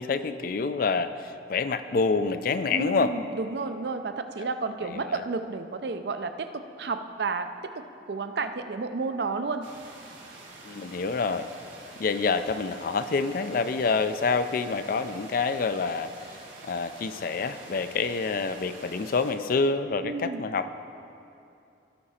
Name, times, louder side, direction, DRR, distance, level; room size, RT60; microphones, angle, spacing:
voice 1, 0.0-3.1 4.4-4.5 4.9-5.1 10.6-11.5 12.0-16.4 16.6-20.7, left 4 dB, 50° left, 11 dB, 0.4 m, -27 dB
voice 2, 2.7-7.5 7.8-9.7 20.0-20.4, right 4 dB, 60° right, 9 dB, 0.5 m, -31 dB
sound 1, 9.6-19.3, right 2 dB, 90° right, 2.1 m, -47 dB
17.0 x 5.8 x 4.2 m, 2.6 s
head